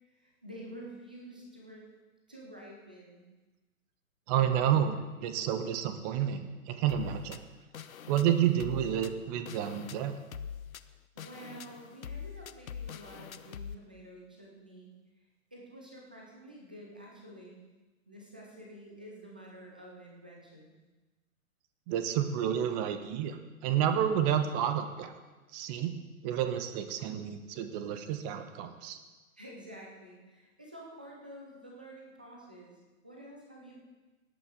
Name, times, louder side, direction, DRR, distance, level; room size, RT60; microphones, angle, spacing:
voice 1, 0.1-1.9 2.3-3.3 11.1-14.9 15.5-17.6 18.1-20.8 29.4-33.8, right 1 dB, 5° right, -2 dB, 0.3 m, -49 dB
voice 2, 4.3-7.4 8.1-10.2 21.9-23.4 23.6-25.1 25.5-25.9 26.2-29.0, right 9 dB, 30° right, 8 dB, 1.1 m, -30 dB
sound 1, 6.9-13.7, left 7 dB, 75° left, 0.7 m, -44 dB
17.5 x 8.6 x 3.8 m, 1.2 s
figure-of-eight pair, 120°, 42 cm